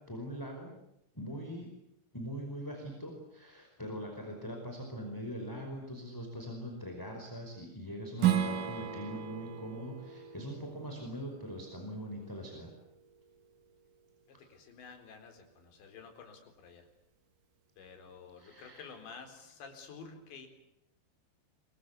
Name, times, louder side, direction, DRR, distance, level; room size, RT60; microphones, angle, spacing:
voice 1, 0.1-0.7 1.1-1.7 2.1-12.7 18.4-18.9, equal, 5° left, 2 dB, 4.4 m, -42 dB
Strum, 8.2-13.4, right 10 dB, 55° right, 2.6 m, -35 dB
voice 2, 14.3-16.9 17.8-20.5, left 5 dB, 65° left, 5 dB, 6.3 m, -51 dB
26.5 x 24.0 x 8.4 m, 0.82 s
omnidirectional pair, 5.5 m